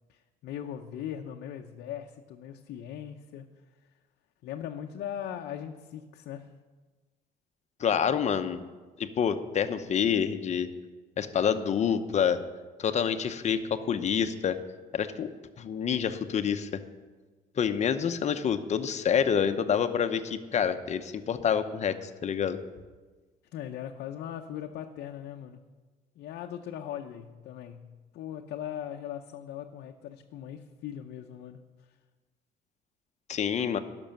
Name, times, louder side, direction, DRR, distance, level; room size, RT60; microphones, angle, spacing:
voice 1, 0.1-3.5 4.4-6.5 23.5-25.6 26.2-31.6, left 10 dB, 75° left, 2 dB, 0.7 m, -39 dB
voice 2, 7.8-8.6 9.0-10.7 11.2-12.4 12.8-14.6 14.9-15.3 15.6-16.8 17.6-22.6 33.3-33.8, left 7 dB, 45° left, 9 dB, 0.9 m, -27 dB
12.0 x 6.2 x 8.9 m, 1.3 s
cardioid pair, 110°, 17 cm